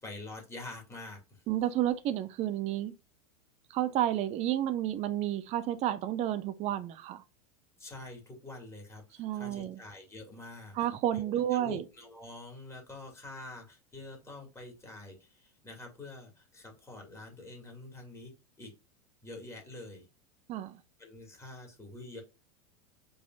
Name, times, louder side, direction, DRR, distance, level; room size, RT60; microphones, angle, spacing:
voice 1, 0.0-1.4 7.8-10.8 11.1-18.3 18.6-18.7 19.2-20.0 21.0-22.2, left 2 dB, 15° left, 2.5 m, -46 dB
voice 2, 1.5-2.9 3.7-7.2 9.2-9.8 10.7-11.8 20.5-20.8, right 12 dB, 35° right, 0.5 m, -31 dB
5.2 x 3.4 x 2.6 m
figure-of-eight pair, 90°, 20 cm